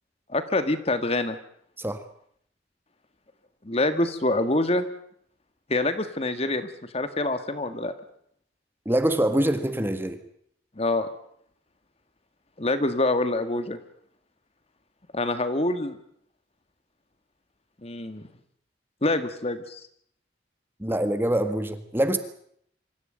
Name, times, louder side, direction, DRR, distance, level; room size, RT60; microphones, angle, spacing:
voice 1, 0.3-1.4 3.6-4.9 5.7-6.7 6.9-7.9 10.8-11.1 12.6-13.8 15.1-16.0 17.8-18.2 19.0-19.8, left 2 dB, 35° left, 10 dB, 1.7 m, -25 dB
voice 2, 8.8-10.2 20.8-22.2, right 1 dB, 10° right, 9 dB, 1.6 m, -24 dB
25.0 x 14.5 x 9.1 m, 0.69 s
head